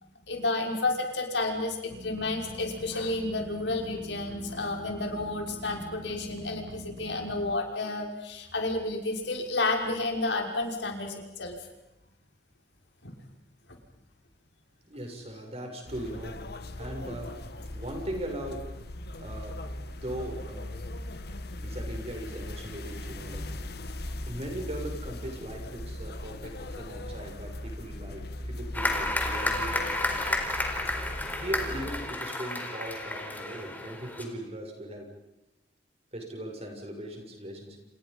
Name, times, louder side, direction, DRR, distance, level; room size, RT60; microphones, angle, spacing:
voice 1, 0.3-11.6 13.0-13.1, left 2 dB, 90° left, 2 dB, 5.9 m, -31 dB
sound 1, 1.9-7.6, right 1 dB, 80° right, 2.3 m, -44 dB
voice 2, 14.9-16.5 16.8-17.4 17.7-18.8 19.2-19.7 20.0-20.9 21.6-23.5 24.3-30.4 31.4-35.1 36.1-37.8, right 1 dB, 35° right, 3 dB, 7.3 m, -39 dB
sound 2, 15.9-32.0, left 1 dB, 65° left, 2.0 m, -39 dB
sound 3, 28.7-34.2, left 1 dB, 10° left, 4.4 m, -31 dB
29.5 x 29.0 x 5.6 m, 0.93 s
head